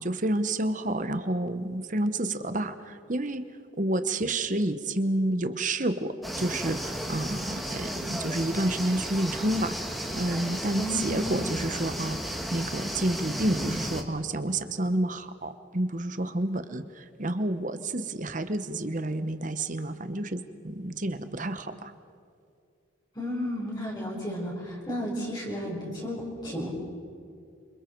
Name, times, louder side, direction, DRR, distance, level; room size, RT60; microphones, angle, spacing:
voice 1, 0.0-3.4 3.8-12.2 12.5-21.9, right 1 dB, 40° right, 10 dB, 1.1 m, -29 dB
sound 1, 6.2-14.0, equal, ahead, 1.6 m, -34 dB
voice 2, 10.8-11.3 23.2-26.7, equal, 20° left, -4 dB, 5.2 m, -33 dB
29.0 x 27.0 x 4.6 m, 2.4 s
head